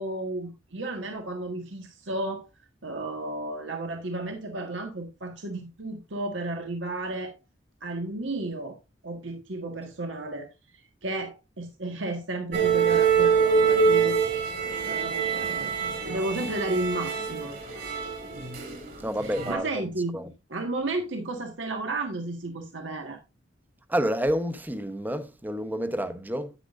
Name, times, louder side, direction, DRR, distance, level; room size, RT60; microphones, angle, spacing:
voice 1, 0.0-2.5 2.8-7.4 7.8-8.8 9.0-10.5 11.0-14.2 14.8-17.5 19.2-20.1 20.5-23.2, right 2 dB, 80° right, 1.6 m, -33 dB
sound 1, 12.5-18.9 19.2-19.5, right 6 dB, 50° right, 2.6 m, -25 dB
voice 2, 19.0-19.8 20.1-20.3 23.9-26.5, equal, 10° right, 0.9 m, -29 dB
9.9 x 9.0 x 2.5 m
head